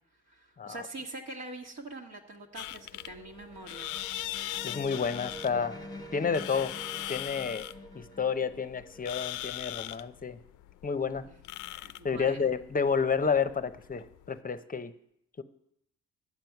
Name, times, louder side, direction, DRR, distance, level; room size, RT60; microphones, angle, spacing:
voice 1, 0.3-3.9 11.2-11.3 11.8-12.5, right 2 dB, 60° right, 0 dB, 1.6 m, -44 dB
sound 1, 2.2-10.0, equal, 15° left, 1.1 m, -47 dB
sound 2, 2.6-14.3, left 15 dB, 85° left, 0.5 m, -40 dB
voice 2, 4.6-5.8 6.1-6.7 7.1-7.7 7.9-10.4 10.8-11.3 11.7-14.9 15.4-15.5, left 6 dB, 30° left, 11 dB, 0.7 m, -30 dB
11.0 x 7.8 x 5.9 m, 0.74 s
cardioid pair, 90°, 30 cm